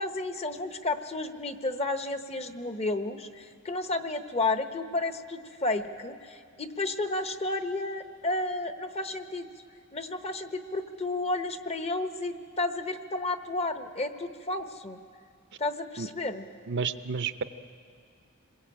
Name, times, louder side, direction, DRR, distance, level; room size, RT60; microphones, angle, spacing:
voice 1, 0.0-9.5 9.9-15.0 15.6-16.4, left 2 dB, 30° left, 8 dB, 1.0 m, -32 dB
voice 2, 16.7-17.4, right 5 dB, 55° right, 11 dB, 0.7 m, -30 dB
27.5 x 21.0 x 8.7 m, 2.3 s
head